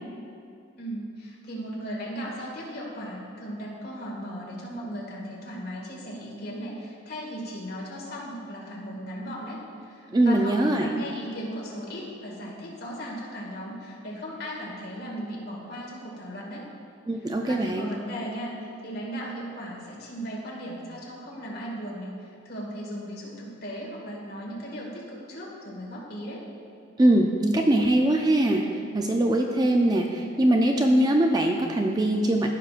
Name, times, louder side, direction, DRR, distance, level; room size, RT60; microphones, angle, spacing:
voice 1, 0.8-16.7 17.5-26.4, equal, 50° left, -4 dB, 1.9 m, -37 dB
voice 2, 10.1-10.9 17.1-17.9 27.0-28.6 28.9-32.5, right 1 dB, 20° right, 2 dB, 0.4 m, -22 dB
15.0 x 5.9 x 2.5 m, 2.5 s
head